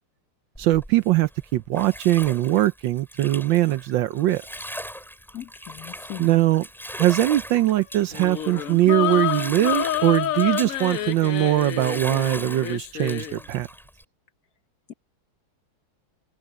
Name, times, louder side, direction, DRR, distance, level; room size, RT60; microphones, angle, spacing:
Bathtub (filling or washing), 0.5-14.0, equal, ahead, 6.2 m, -39 dB
voice 1, 0.6-4.4 6.2-6.6 7.0-13.7, right 14 dB, 70° right, 1.2 m, -21 dB
voice 2, 5.3-6.3, left 12 dB, 55° left, 1.4 m, -38 dB
sound 1, 8.1-13.4, left 12 dB, 85° left, 0.7 m, -28 dB
omnidirectional pair, 2.3 m